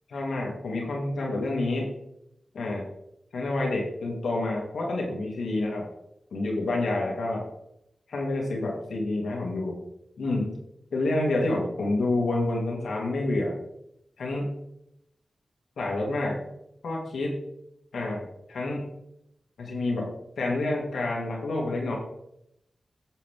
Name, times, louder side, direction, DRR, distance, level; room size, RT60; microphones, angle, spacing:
voice 1, 0.1-1.9 2.5-2.9 3.3-5.9 6.3-7.4 8.1-9.8 10.2-10.6 10.9-13.5 14.2-14.5 15.8-16.4 16.8-17.4 17.9-18.9 19.6-20.1 20.4-22.0, left 2 dB, 90° left, -1 dB, 2.4 m, -28 dB
9.5 x 6.7 x 3.6 m, 0.78 s
cardioid pair, 45°, 0 cm